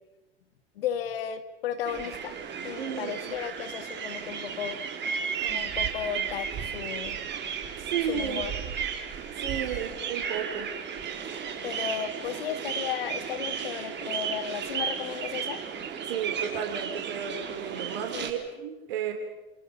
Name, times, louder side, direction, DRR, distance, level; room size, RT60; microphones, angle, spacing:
voice 1, 0.8-2.3 2.6-4.8 5.4-7.2 8.1-8.5 11.3-15.6 18.1-18.3, left 9 dB, 70° left, 9 dB, 2.3 m, -34 dB
sound 1, 1.8-18.3, right 7 dB, 35° right, 4.1 m, -34 dB
voice 2, 2.8-3.4 7.8-8.4 9.4-10.7 16.1-19.1, right 8 dB, 65° right, 4 dB, 3.8 m, -33 dB
28.5 x 28.0 x 5.6 m, 1.1 s
figure-of-eight pair, 80°, 30 cm